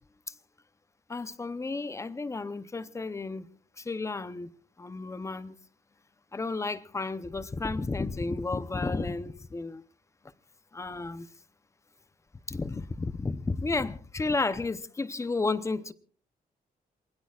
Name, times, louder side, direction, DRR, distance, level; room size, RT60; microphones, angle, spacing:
voice 1, 1.1-3.5 3.8-4.5 4.8-5.6 6.3-9.8 10.7-11.3 12.5-15.9, left 3 dB, 20° left, 0.7 m, -32 dB
28.0 x 20.5 x 2.4 m
wide cardioid pair, 150°, 16 cm